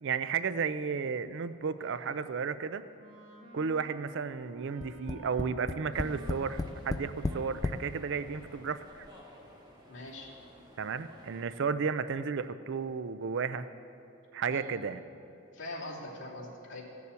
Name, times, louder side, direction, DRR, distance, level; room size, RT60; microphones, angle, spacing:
voice 1, 0.0-2.8 3.5-9.1 10.8-13.7 14.3-15.0, right 5 dB, 65° right, 13 dB, 0.5 m, -33 dB
Wind instrument woodwind instrument, 1.7-8.3, right 1 dB, 90° right, 2.1 m, -54 dB
Tap, 4.8-7.8 8.7-8.8 9.1-9.2, left 2 dB, 20° left, 0.3 m, -34 dB
sound 1, 5.9-11.5, equal, 20° right, 1.8 m, -54 dB
voice 2, 9.9-10.3 14.5-14.7 15.5-16.8, left 2 dB, 60° left, -5 dB, 2.9 m, -42 dB
15.5 x 7.0 x 8.2 m, 2.7 s
head